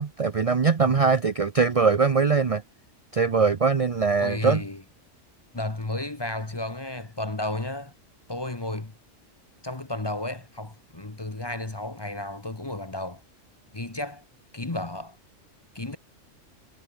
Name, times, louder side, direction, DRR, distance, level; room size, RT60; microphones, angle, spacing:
voice 1, 0.0-2.6 3.1-4.6, right 5 dB, 35° right, 0.6 m, -22 dB
voice 2, 4.2-4.8 5.5-7.9 8.3-8.9 9.6-13.2 13.7-14.2 14.5-15.2 15.7-16.0, left 2 dB, 20° left, 1.2 m, -33 dB
omnidirectional pair, 1.3 m